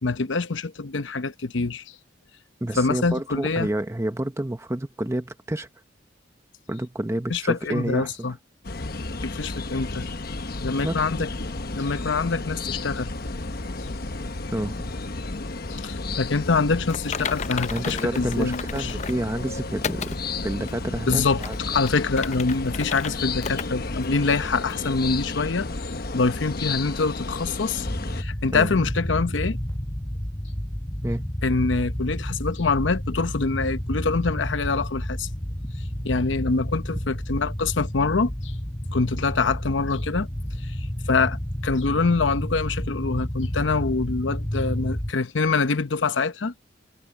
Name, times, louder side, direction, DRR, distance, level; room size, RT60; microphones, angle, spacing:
voice 1, 0.0-1.8 2.8-3.7 7.3-8.4 9.2-10.0 10.6-11.3 11.7-13.1 13.8-13.9 15.7-19.0 21.1-25.7 26.1-29.6 31.4-35.3 36.0-38.5 38.9-40.3 40.6-46.5, left 4 dB, 90° left, 0.8 m, -25 dB
voice 2, 2.6-5.7 6.7-8.1 10.7-11.0 14.5-14.9 17.7-20.1 20.4-21.6 28.5-28.7 31.0-31.2, right 1 dB, 15° right, 0.8 m, -29 dB
sound 1, 8.6-28.2, left 3 dB, 55° left, 1.2 m, -32 dB
Typing, 16.9-19.2 19.8-20.2 20.7-20.8 21.3-23.1 23.4-23.7 24.0-24.1 24.7-24.8, left 7 dB, 40° left, 0.5 m, -33 dB
sound 2, 27.9-45.1, equal, 15° left, 1.1 m, -30 dB
head